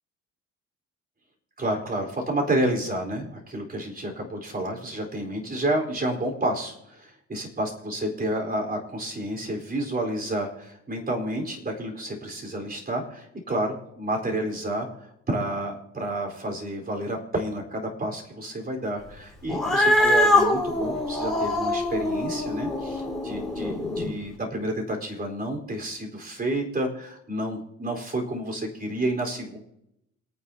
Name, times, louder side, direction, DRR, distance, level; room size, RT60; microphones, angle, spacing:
voice 1, 1.6-14.9 15.3-29.6, right 1 dB, 30° right, 1 dB, 4.4 m, -30 dB
Cat, 19.5-24.1, left 1 dB, ahead, 4.4 m, -24 dB
28.0 x 9.6 x 2.9 m, 0.83 s
cardioid pair, 90°, 30 cm